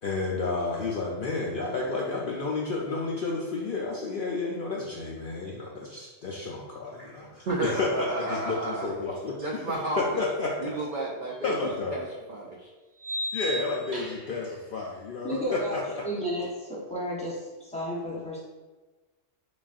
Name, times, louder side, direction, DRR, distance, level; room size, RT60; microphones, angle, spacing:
voice 1, 0.0-9.6 10.0-10.7 11.4-12.0 13.3-16.0, left 3 dB, 65° left, -3 dB, 0.5 m, -31 dB
voice 2, 7.5-8.9 9.4-10.2 10.6-11.6 11.9-12.7, right 2 dB, 65° right, -2 dB, 0.5 m, -32 dB
sound 1, 11.3-11.4 13.0-14.4, equal, 30° right, 0.9 m, -34 dB
voice 3, 15.2-15.8 16.0-18.4, equal, 5° left, -5 dB, 0.7 m, -32 dB
4.0 x 3.4 x 2.4 m, 1.2 s
omnidirectional pair, 1.3 m